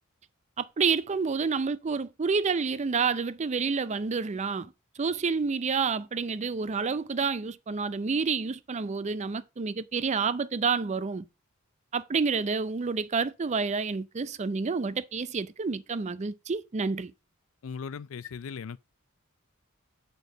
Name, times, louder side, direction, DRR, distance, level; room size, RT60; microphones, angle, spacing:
voice 1, 0.6-11.3 11.9-17.1, right 5 dB, 35° right, 0.4 m, -29 dB
voice 2, 17.6-18.8, left 6 dB, 65° left, 0.4 m, -38 dB
8.0 x 4.6 x 4.8 m
head